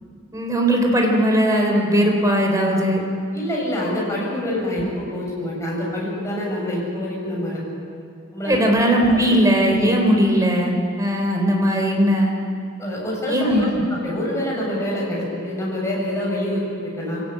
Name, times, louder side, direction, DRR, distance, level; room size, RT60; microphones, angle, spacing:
voice 1, 0.3-3.0 8.5-12.3 13.3-13.8, equal, 20° right, 1 dB, 3.8 m, -18 dB
voice 2, 3.3-7.6 8.3-8.6 9.1-9.2 12.8-17.2, left 1 dB, 15° left, -4 dB, 7.3 m, -26 dB
24.5 x 17.5 x 8.9 m, 2.4 s
head